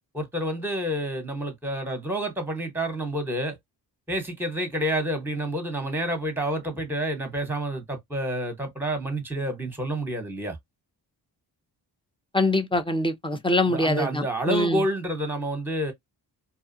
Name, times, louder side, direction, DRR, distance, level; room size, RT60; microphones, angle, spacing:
voice 1, 0.1-3.6 4.1-10.6 13.7-15.9, right 1 dB, 5° right, 1.0 m, -29 dB
voice 2, 12.3-14.8, left 1 dB, 10° left, 0.5 m, -24 dB
2.6 x 2.3 x 2.5 m
cardioid pair, 70°, 43 cm